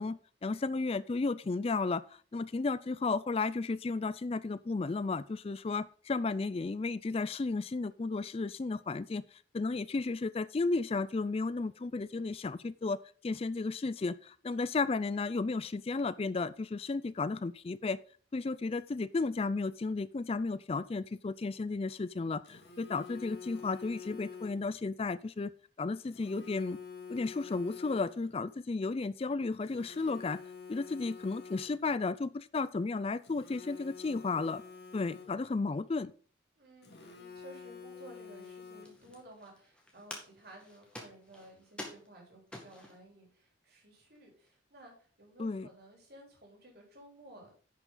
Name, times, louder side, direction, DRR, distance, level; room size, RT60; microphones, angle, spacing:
voice 1, 0.0-2.0 2.3-9.2 9.5-13.0 13.2-18.0 18.3-25.5 25.8-26.8 27.1-30.4 30.7-34.6 34.9-36.1 45.4-45.7, left 3 dB, 30° left, 17 dB, 0.3 m, -33 dB
Telephone, 22.4-24.8 26.1-28.4 29.6-32.0 33.2-35.6 36.8-39.2, left 6 dB, 55° left, 2.0 m, -48 dB
voice 2, 36.6-47.5, right 1 dB, 55° right, 0 dB, 3.8 m, -55 dB
sound 1, 38.4-43.1 43.7-43.8 44.1-44.5, left 1 dB, 5° left, 1.8 m, -49 dB
11.0 x 5.9 x 3.8 m, 0.43 s
head